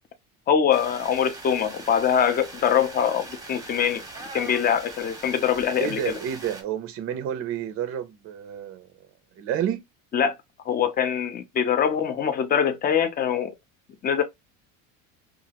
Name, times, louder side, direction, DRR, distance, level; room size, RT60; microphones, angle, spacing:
voice 1, 0.5-4.0 4.3-6.0 10.1-10.3 10.6-13.5 14.0-14.2, left 8 dB, 25° left, 0.5 m, -23 dB
sound 1, 0.7-6.6, right 2 dB, 10° right, 0.9 m, -41 dB
voice 2, 5.8-8.9 9.4-9.8, right 9 dB, 35° right, 0.5 m, -30 dB
2.8 x 2.5 x 2.8 m
supercardioid pair, 115°, 39 cm